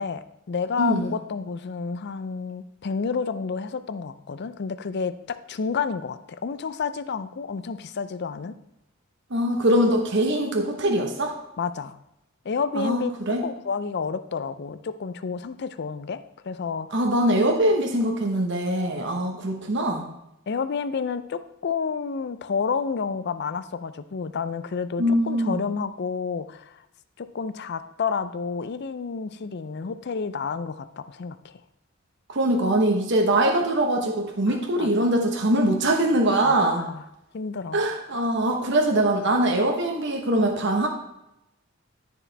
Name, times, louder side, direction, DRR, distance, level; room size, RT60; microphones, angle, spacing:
voice 1, 0.0-8.5 11.6-12.0 12.4-13.1 13.4-16.9 20.5-26.8 27.2-31.5 34.5-35.1 36.4-37.0 37.3-37.8, left 5 dB, 55° left, 13 dB, 0.5 m, -30 dB
voice 2, 9.3-11.3 12.7-13.4 16.9-20.1 25.0-25.6 32.3-36.8 37.7-40.9, right 1 dB, 60° right, 2 dB, 1.0 m, -22 dB
14.0 x 5.0 x 3.4 m, 0.87 s
head